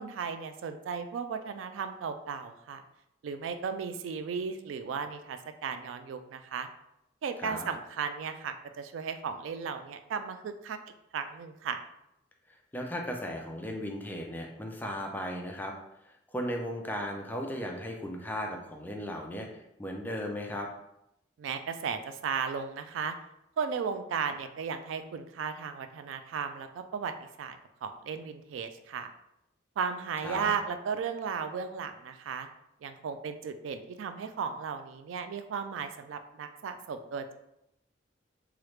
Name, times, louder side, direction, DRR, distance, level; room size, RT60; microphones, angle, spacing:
voice 1, 0.0-2.8 3.2-6.7 7.2-10.8 11.1-11.8 21.4-23.1 23.6-27.1 27.4-27.6 27.8-29.1 29.8-32.5 32.8-37.3, right 6 dB, 90° right, 8 dB, 0.3 m, -35 dB
voice 2, 12.7-15.7 16.3-20.7 30.2-30.5, equal, 10° left, 1 dB, 0.4 m, -36 dB
3.1 x 2.4 x 3.1 m, 0.82 s
head